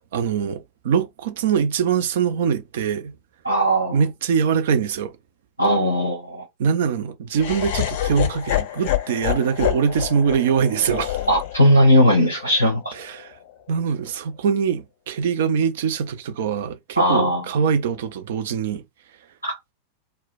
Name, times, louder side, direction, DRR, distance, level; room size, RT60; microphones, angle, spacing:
voice 1, 0.1-3.1 3.9-5.1 6.6-11.2 12.9-13.3 13.7-18.8, right 7 dB, 55° right, 0.5 m, -23 dB
voice 2, 3.4-4.0 5.6-6.4 11.3-12.9 17.0-17.4 19.4-19.5, equal, 90° right, 1.1 m, -18 dB
Laughter, 7.3-13.5, left 13 dB, 50° left, 0.5 m, -28 dB
2.2 x 2.1 x 3.8 m
figure-of-eight pair, 90°, 0 cm